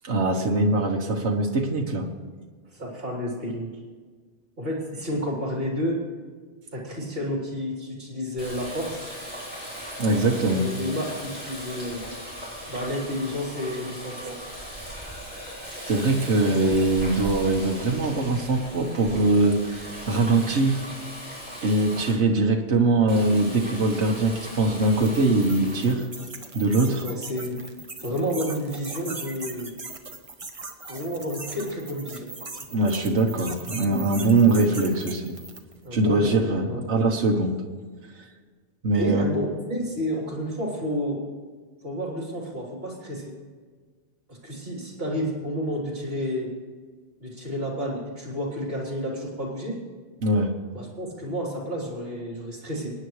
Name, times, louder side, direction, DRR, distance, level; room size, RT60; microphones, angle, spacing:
voice 1, 0.0-2.1 10.0-10.7 15.9-20.8 21.6-26.1 26.5-27.0 32.7-35.3 35.9-37.6 38.2-38.3 38.8-39.2 50.2-50.5, right 2 dB, 80° right, 1 dB, 1.5 m, -22 dB
voice 2, 2.7-3.7 4.6-6.0 6.7-9.1 10.5-12.0 12.7-14.4 27.0-27.6 28.0-29.7 30.9-32.3 35.8-36.3 36.7-36.8 39.0-41.2 41.8-43.3 44.3-46.5 47.2-49.7 50.7-52.9, equal, 55° right, -3 dB, 3.7 m, -30 dB
Water tap faucet, 8.4-22.1 23.1-25.9, equal, 10° right, 5.2 m, -38 dB
sound 1, 25.0-35.8, right 3 dB, 30° right, 1.0 m, -39 dB
25.5 x 9.8 x 3.2 m, 1.5 s
omnidirectional pair, 1.2 m